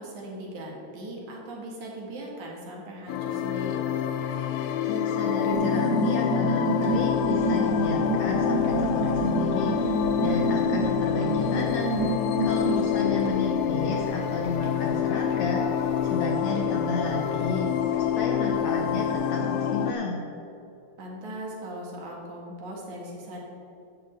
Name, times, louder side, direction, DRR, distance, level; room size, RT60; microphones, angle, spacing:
voice 1, 0.0-3.8 12.6-13.4 21.0-23.4, equal, 60° right, -3 dB, 3.0 m, -39 dB
sound 1, 3.1-19.9, left 9 dB, 85° left, 1.7 m, -27 dB
voice 2, 4.9-11.9 12.4-17.7 18.0-20.2, left 3 dB, 70° left, 0 dB, 1.8 m, -32 dB
sound 2, 5.5-12.9, right 3 dB, 80° right, 2.3 m, -29 dB
sound 3, 6.8-19.1, right 2 dB, 45° right, 1.6 m, -42 dB
11.0 x 4.8 x 7.8 m, 2.6 s
omnidirectional pair, 3.9 m